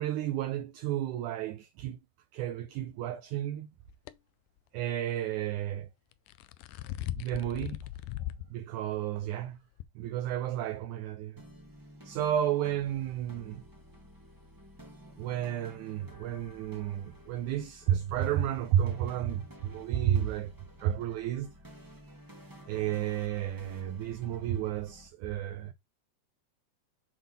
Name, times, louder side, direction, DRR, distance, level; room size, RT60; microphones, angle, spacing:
voice 1, 0.0-2.0 2.3-3.7 4.7-5.9 7.2-7.8 8.5-9.6 10.0-11.4 12.1-13.7 15.2-20.5 20.8-21.5 22.7-25.7, right 11 dB, 75° right, 2.0 m, -32 dB
sound 1, 3.9-4.1 6.1-8.5 8.9-9.0 9.8-9.9, left 13 dB, 80° left, 2.0 m, -38 dB
sound 2, 11.4-25.1, right 1 dB, 20° right, 0.6 m, -52 dB
7.7 x 3.7 x 4.1 m
omnidirectional pair, 3.8 m